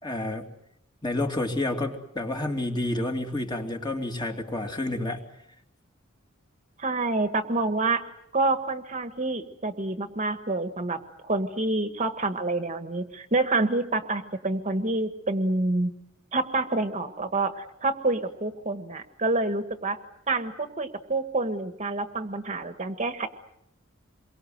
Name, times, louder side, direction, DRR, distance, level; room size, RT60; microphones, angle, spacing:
voice 1, 0.0-0.5 1.0-5.2, left 2 dB, 20° left, 3 dB, 2.8 m, -29 dB
voice 2, 6.8-8.0 8.3-15.9 16.3-20.0 20.3-23.3, right 2 dB, 35° right, 9 dB, 1.5 m, -27 dB
28.0 x 23.5 x 8.0 m, 0.79 s
head